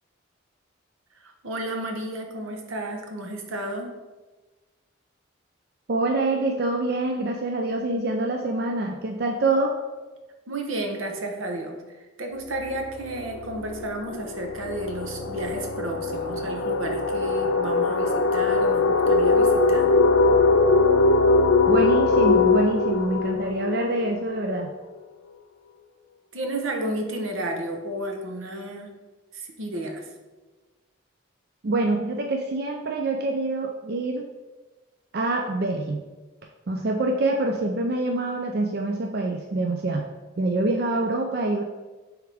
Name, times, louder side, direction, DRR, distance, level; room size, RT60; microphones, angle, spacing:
voice 1, 1.1-3.9 10.5-19.9 26.3-28.9 29.3-30.1, right 1 dB, 80° right, 3 dB, 1.0 m, -32 dB
voice 2, 5.9-9.7 21.7-24.7 31.6-34.2 35.1-36.0 36.7-40.1 40.4-41.6, right 2 dB, 50° right, 2 dB, 0.4 m, -25 dB
sound 1, 12.5-12.8 13.1-24.6, left 3 dB, 75° left, 0.6 m, -21 dB
9.4 x 3.5 x 3.5 m, 1.2 s
head